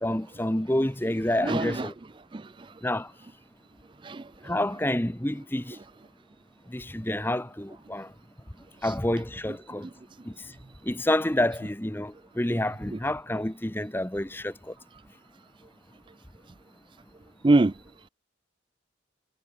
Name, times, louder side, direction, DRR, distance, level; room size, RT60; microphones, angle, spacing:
voice 1, 0.0-1.9 2.8-3.1 4.4-5.8 6.7-8.1 8.8-9.9 10.2-10.5 10.8-14.7, left 1 dB, 10° left, 1.0 m, -28 dB
voice 2, 1.4-1.9 2.3-2.7 4.0-4.5 8.8-8.9 17.4-17.7, right 2 dB, 25° right, 0.4 m, -25 dB
head